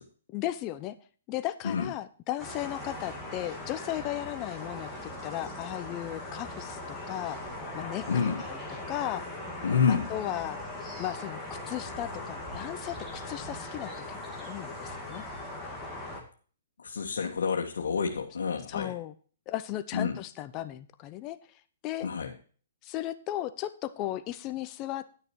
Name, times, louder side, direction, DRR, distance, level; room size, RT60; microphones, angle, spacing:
voice 1, 0.3-1.0 1.3-7.4 7.7-8.0 8.4-8.6 8.9-9.2 9.9-10.6 11.0-15.3 18.7-19.1 19.5-21.4 21.8-22.1 22.8-25.0, left 14 dB, 25° left, 13 dB, 0.7 m, -36 dB
sound 1, 2.4-16.2, left 1 dB, 5° left, 2.4 m, -39 dB
voice 2, 8.1-8.4 9.6-10.1 16.8-18.9 19.9-20.2 22.0-22.3, left 6 dB, 85° left, 0 dB, 1.7 m, -28 dB
11.0 x 6.6 x 4.6 m, 0.41 s
hypercardioid pair, 155°, 0 cm